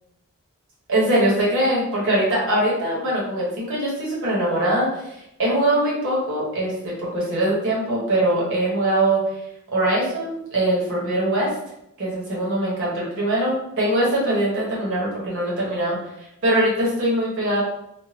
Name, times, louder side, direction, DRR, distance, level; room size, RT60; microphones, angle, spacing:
voice 1, 0.9-5.0 5.4-9.2 9.7-11.5 12.0-16.0 16.4-17.6, right 1 dB, 60° right, -5 dB, 1.3 m, -22 dB
3.6 x 2.1 x 2.9 m, 0.81 s
head